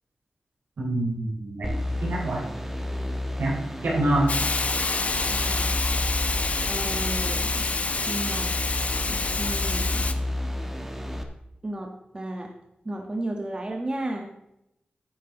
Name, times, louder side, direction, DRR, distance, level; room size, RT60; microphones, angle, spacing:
voice 1, 0.8-1.7 2.0-2.4 3.4-3.6 3.8-4.3, right 1 dB, 85° right, -2 dB, 3.6 m, -25 dB
sound 1, 1.6-11.2, left 1 dB, 10° right, 1.4 m, -31 dB
Hiss, 4.3-10.1, left 3 dB, 50° left, 0.8 m, -27 dB
voice 2, 5.3-5.7 6.7-7.7 8.1-8.5 9.4-9.9 11.6-12.5 12.8-14.3, right 1 dB, 30° right, 2 dB, 1.3 m, -33 dB
10.5 x 9.3 x 3.9 m, 0.84 s
wide cardioid pair, 70°, 3 cm